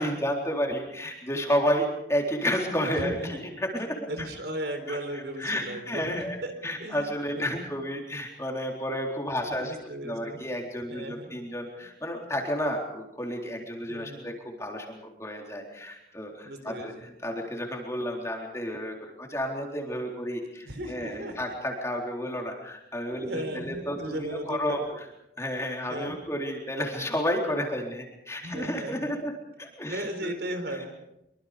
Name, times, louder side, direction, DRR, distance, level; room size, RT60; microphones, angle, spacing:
voice 1, 0.0-4.0 4.9-6.4 6.6-9.8 10.0-16.9 17.2-24.8 25.4-29.3 29.6-30.3, equal, 15° left, 1 dB, 3.9 m, -31 dB
voice 2, 2.9-3.4 3.7-6.5 6.8-7.1 7.3-7.7 9.3-10.5 10.9-11.4 13.9-14.3 16.4-17.1 20.6-21.4 23.2-24.8 25.9-26.2 28.4-29.1 29.8-30.9, right 1 dB, 65° right, 7 dB, 4.1 m, -36 dB
25.0 x 24.5 x 5.2 m, 0.85 s
head